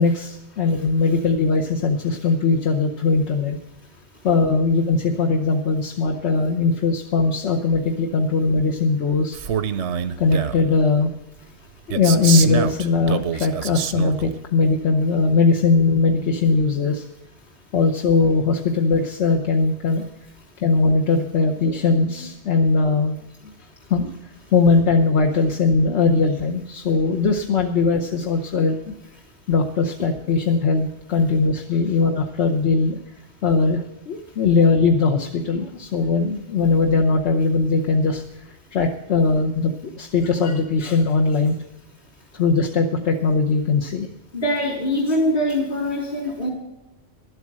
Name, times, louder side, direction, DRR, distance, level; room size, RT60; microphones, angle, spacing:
voice 1, 0.0-3.6 4.2-9.4 10.2-11.1 11.9-17.0 17.7-20.1 20.6-23.2 23.9-24.1 24.5-28.9 29.5-33.0 33.4-38.2 38.7-41.5 42.3-44.1, left 4 dB, 75° left, 1 dB, 1.2 m, -20 dB
Male speech man speaking, 9.3-10.7 11.9-14.3, right 8 dB, 80° right, 1.0 m, -26 dB
voice 2, 44.3-46.5, left 1 dB, 55° left, -7 dB, 3.9 m, -23 dB
12.0 x 8.2 x 7.4 m, 0.93 s
omnidirectional pair, 1.2 m